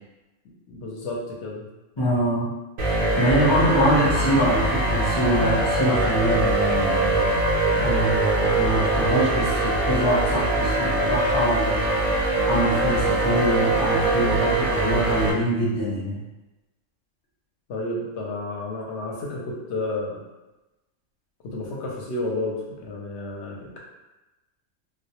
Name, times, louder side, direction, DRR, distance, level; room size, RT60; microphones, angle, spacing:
voice 1, 0.7-1.7 17.7-20.2 21.4-23.8, left 2 dB, 65° left, -3 dB, 0.8 m, -31 dB
voice 2, 2.0-2.5 3.2-11.9 12.2-16.2, equal, 45° left, -9 dB, 0.3 m, -24 dB
sound 1, 2.8-15.3, right 2 dB, 90° right, 1.0 m, -22 dB
2.2 x 2.1 x 2.8 m, 1.1 s
omnidirectional pair, 1.4 m